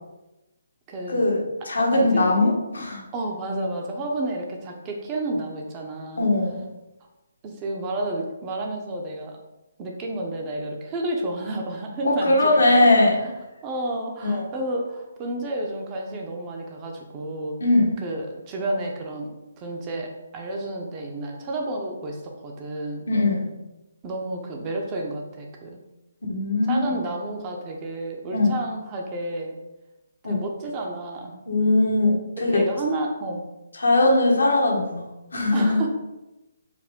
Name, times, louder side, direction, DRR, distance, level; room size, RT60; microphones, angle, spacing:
voice 1, 0.9-1.3 1.8-2.2 3.1-6.2 7.4-9.4 9.8-12.9 13.6-17.6 18.0-19.3 19.6-23.1 24.0-25.8 26.7-29.6 30.2-31.4 32.4-33.4 35.5-35.9, right 2 dB, 25° right, 1 dB, 0.6 m, -31 dB
voice 2, 1.7-3.0 6.2-6.6 12.0-13.2 14.2-14.4 17.6-18.0 23.1-23.5 26.3-26.8 28.3-28.5 30.2-30.4 31.5-32.6 33.8-35.0 35.3-35.9, left 2 dB, 90° left, -1 dB, 1.2 m, -20 dB
4.7 x 2.1 x 3.6 m, 0.99 s
hypercardioid pair, 155°, 0 cm